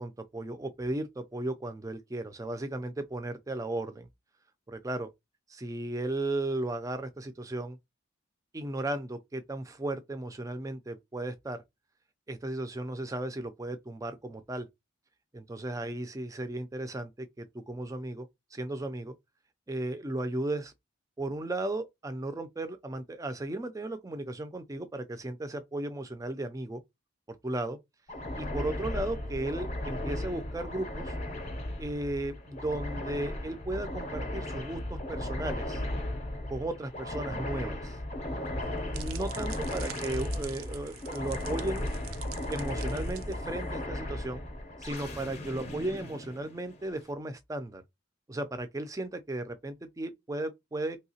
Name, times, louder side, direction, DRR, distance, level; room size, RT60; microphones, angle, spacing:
voice 1, 0.0-4.1 4.7-5.1 5.5-7.8 8.5-11.6 12.3-14.7 15.3-17.1 17.4-19.1 19.7-20.7 21.2-26.8 27.3-27.8 28.4-31.2 31.8-35.8 36.5-38.0 38.9-41.9 42.5-44.4 44.8-47.8 48.3-51.0, right 2 dB, 15° right, 0.3 m, -35 dB
sound 1, 28.1-46.9, left 1 dB, 30° left, 0.6 m, -36 dB
sound 2, 38.4-43.8, right 11 dB, 80° right, 0.5 m, -47 dB
3.2 x 2.8 x 2.8 m
head